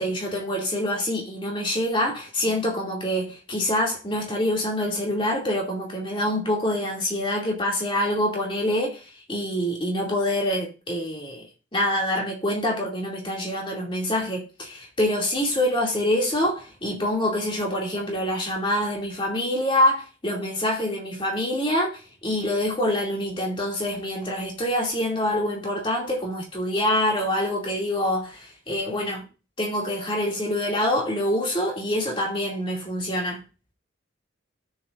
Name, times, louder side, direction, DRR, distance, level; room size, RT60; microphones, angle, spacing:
voice 1, 0.0-11.5 11.7-29.3 29.6-33.4, left 1 dB, 25° left, 2.5 m, -26 dB
18.0 x 6.9 x 2.5 m
head